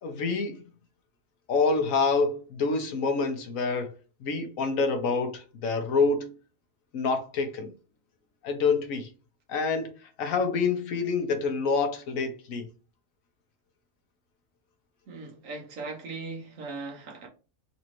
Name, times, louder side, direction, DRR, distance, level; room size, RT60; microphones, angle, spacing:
voice 1, 0.0-0.6 1.5-3.9 4.2-6.3 6.9-7.7 8.4-9.1 9.5-9.9 10.2-12.7, left 4 dB, 80° left, 1.2 m, -27 dB
voice 2, 15.1-17.3, right 3 dB, 75° right, 1.3 m, -39 dB
4.1 x 2.6 x 3.0 m
omnidirectional pair, 1.4 m